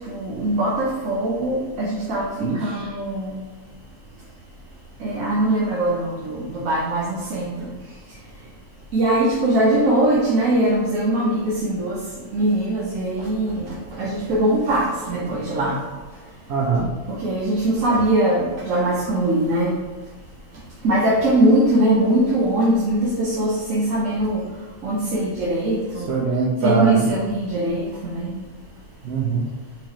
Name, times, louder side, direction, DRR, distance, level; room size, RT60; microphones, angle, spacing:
voice 1, 0.0-3.4 5.0-7.7 8.1-8.2 8.9-15.8 17.1-19.8 20.8-24.5 24.8-26.1 26.6-28.4, right 1 dB, 80° right, -6 dB, 1.2 m, -21 dB
voice 2, 2.4-2.9 16.5-16.9 26.1-27.1 29.0-29.5, right 5 dB, 65° right, -4 dB, 0.8 m, -21 dB
4.5 x 2.8 x 3.1 m, 1.3 s
omnidirectional pair, 1.4 m